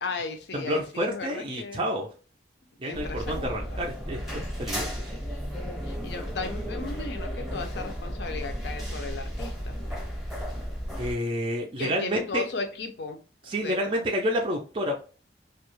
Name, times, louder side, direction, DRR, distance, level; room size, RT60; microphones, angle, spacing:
voice 1, 0.0-1.8 2.8-3.8 4.3-4.4 5.8-9.8 11.8-13.2 13.5-14.1, left 4 dB, 70° left, 0.5 m, -36 dB
voice 2, 0.5-2.1 2.8-5.1 11.0-12.4 13.5-15.0, equal, 30° right, 0.3 m, -29 dB
sound 1, 2.9-11.1, equal, ahead, 0.7 m, -34 dB
2.3 x 2.0 x 2.9 m
head